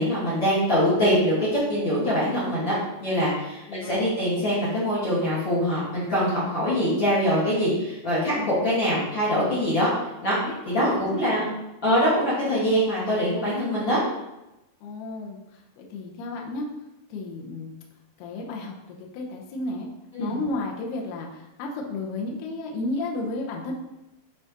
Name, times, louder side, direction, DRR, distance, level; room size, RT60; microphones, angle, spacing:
voice 1, 0.0-9.9 10.2-10.4 10.7-11.5 11.8-14.0 20.1-20.3, equal, 35° left, -10 dB, 2.4 m, -23 dB
voice 2, 3.7-4.0 8.3-8.6 10.4-11.4 14.8-16.7 17.1-17.7 18.2-19.9 20.2-23.7, left 2 dB, 75° left, -1 dB, 2.7 m, -33 dB
8.8 x 4.0 x 3.9 m, 0.96 s
omnidirectional pair, 4.9 m